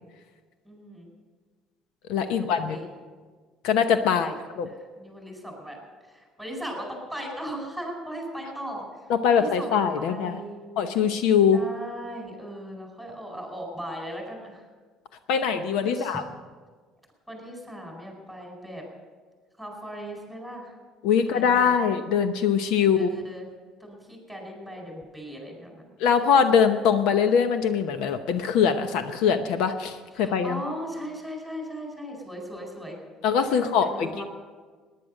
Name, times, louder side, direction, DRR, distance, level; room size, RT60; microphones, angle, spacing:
voice 1, 0.6-1.1 2.4-2.9 4.2-4.3 4.7-5.8 6.1-8.9 9.3-10.7 11.5-14.6 15.8-16.2 17.3-18.9 19.6-20.7 21.3-21.8 23.0-23.5 23.8-25.9 30.2-33.0 33.5-34.2, equal, 5° left, 0 dB, 4.8 m, -38 dB
voice 2, 2.1-2.8 3.6-4.7 9.1-10.4 10.8-11.6 15.3-16.2 21.0-23.1 26.0-30.6 33.2-34.2, left 7 dB, 80° left, 9 dB, 0.9 m, -22 dB
18.0 x 10.5 x 6.5 m, 1.5 s
cardioid pair, 140°, 0 cm